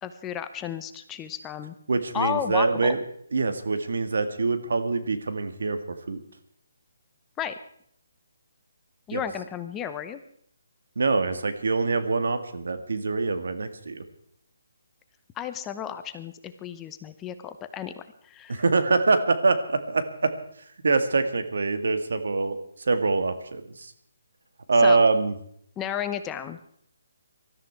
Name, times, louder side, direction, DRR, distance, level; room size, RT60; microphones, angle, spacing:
voice 1, 0.0-1.7 2.1-3.0 7.4-7.5 9.1-10.2 15.4-18.6 24.8-25.1 25.8-26.6, left 9 dB, 15° left, 10 dB, 0.8 m, -33 dB
voice 2, 1.9-3.0 3.3-6.2 9.1-9.2 11.0-14.0 18.5-20.3 20.8-23.9 24.7-25.3, right 3 dB, 75° right, 9 dB, 1.9 m, -24 dB
19.5 x 13.0 x 4.6 m, 0.67 s
hypercardioid pair, 160°, 0 cm